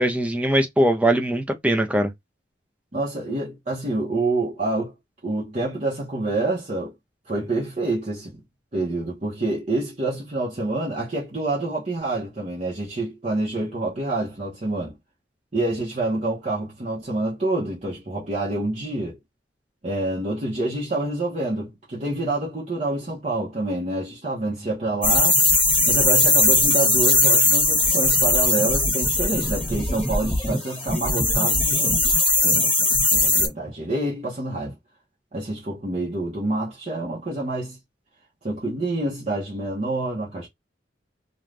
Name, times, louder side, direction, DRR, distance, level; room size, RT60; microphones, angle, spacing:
voice 1, 0.0-2.1, right 1 dB, 10° right, 0.5 m, -21 dB
voice 2, 2.9-4.9 5.2-6.9 7.3-8.4 8.7-15.0 15.5-19.2 19.8-25.4 25.8-32.7 33.1-34.8 35.3-37.8 38.4-40.5, right 2 dB, 40° right, 0.8 m, -27 dB
sound 1, 25.0-33.5, left 2 dB, 10° left, 1.3 m, -19 dB
2.5 x 2.3 x 3.2 m
head